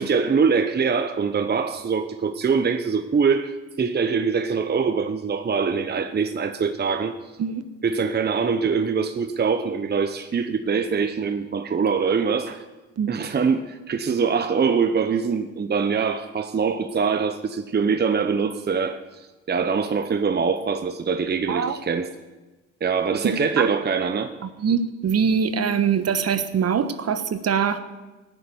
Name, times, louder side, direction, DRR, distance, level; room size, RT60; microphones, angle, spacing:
voice 1, 0.0-7.1 7.8-12.6 13.1-22.1 22.8-24.3, right 5 dB, 35° right, 8 dB, 0.9 m, -23 dB
voice 2, 23.2-23.7 24.4-27.8, right 7 dB, 55° right, 10 dB, 1.3 m, -23 dB
17.0 x 7.0 x 9.6 m, 1.2 s
cardioid pair, 90°, 30 cm